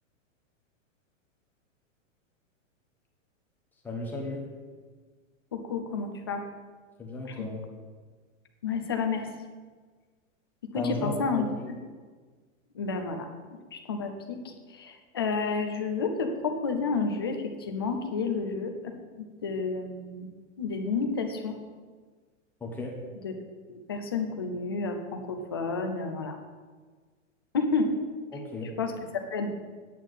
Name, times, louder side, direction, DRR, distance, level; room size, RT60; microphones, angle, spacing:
voice 1, 3.8-4.4 7.0-7.6 10.7-11.5 22.6-22.9 28.3-28.7, left 2 dB, 5° left, -2 dB, 0.9 m, -34 dB
voice 2, 5.5-6.4 7.2-7.5 8.6-9.3 10.7-11.5 12.7-13.3 13.7-20.3 20.6-21.5 23.2-23.3 23.7-26.4 27.5-27.9 28.8-29.5, left 4 dB, 20° left, 5 dB, 0.4 m, -30 dB
9.1 x 5.7 x 7.9 m, 1.5 s
supercardioid pair, 170°, 39 cm